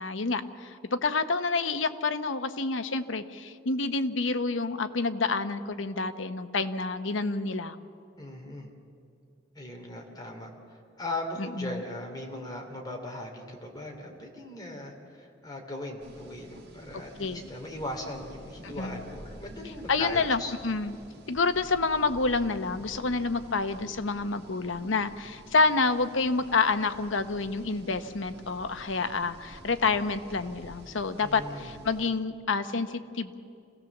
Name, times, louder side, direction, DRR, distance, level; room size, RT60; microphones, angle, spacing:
voice 1, 0.0-7.8 11.4-11.8 17.2-17.4 18.6-19.0 19.9-21.0 21.3-33.4, left 4 dB, 80° left, 10 dB, 0.9 m, -28 dB
voice 2, 8.2-8.7 9.5-10.5 11.0-20.5 31.2-31.7, left 1 dB, 20° left, 1 dB, 2.9 m, -38 dB
sound 1, 16.0-32.1, equal, 55° right, 2.1 m, -49 dB
26.5 x 17.0 x 7.2 m, 2.5 s
head